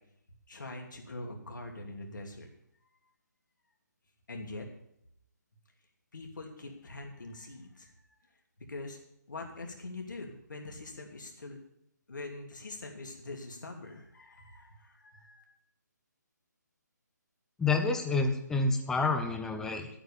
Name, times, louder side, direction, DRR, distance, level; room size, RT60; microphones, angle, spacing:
voice 1, 0.5-2.5 4.3-4.7 6.1-8.1 8.7-9.0 9.3-11.6 12.1-15.4, left 2 dB, 80° left, 1 dB, 2.8 m, -43 dB
voice 2, 17.6-19.9, left 3 dB, 5° left, 5 dB, 0.9 m, -28 dB
11.0 x 8.9 x 7.0 m, 0.76 s
hypercardioid pair, 155°, 10 cm